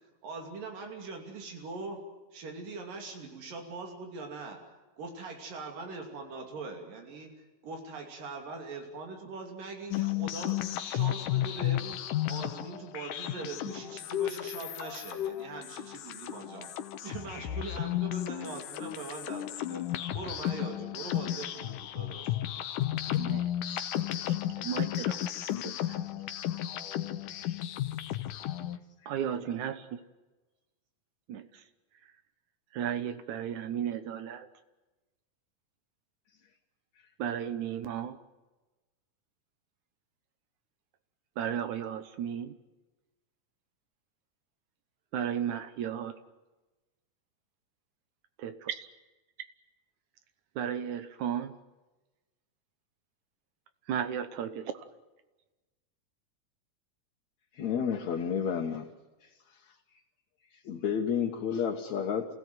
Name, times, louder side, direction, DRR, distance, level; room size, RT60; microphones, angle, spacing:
voice 1, 0.2-2.0 2.3-4.6 5.0-7.3 7.6-12.0 12.3-16.7 17.0-22.4, right 3 dB, 85° right, 3 dB, 4.5 m, -42 dB
sound 1, 9.9-28.8, left 12 dB, 80° left, 2.5 m, -33 dB
voice 2, 23.2-23.9 24.3-26.0 29.1-30.0 31.3-31.6 32.0-32.1 32.7-34.5 37.2-38.2 41.4-42.5 45.1-46.2 48.4-48.9 50.6-51.6 53.9-54.9, right 9 dB, 70° right, 11 dB, 2.3 m, -35 dB
voice 3, 57.6-58.9 60.7-62.3, left 7 dB, 60° left, 0 dB, 2.7 m, -30 dB
28.0 x 16.5 x 9.4 m, 1.2 s
omnidirectional pair, 3.8 m